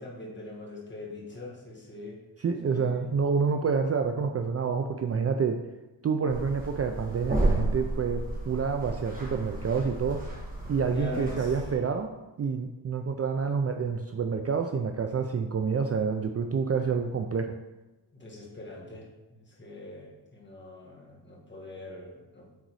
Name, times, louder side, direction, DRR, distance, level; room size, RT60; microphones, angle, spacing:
voice 1, 0.0-2.2 2.6-3.0 10.9-11.5 18.1-19.1 19.4-22.6, left 2 dB, 25° left, -2 dB, 1.7 m, -42 dB
voice 2, 2.4-5.6 6.0-10.2 10.7-12.1 12.4-17.5, right 5 dB, 40° right, 5 dB, 0.4 m, -28 dB
sound 1, 6.3-11.7, right 2 dB, 20° right, 1.6 m, -32 dB
8.1 x 3.9 x 4.7 m, 1.1 s
wide cardioid pair, 130°, 41 cm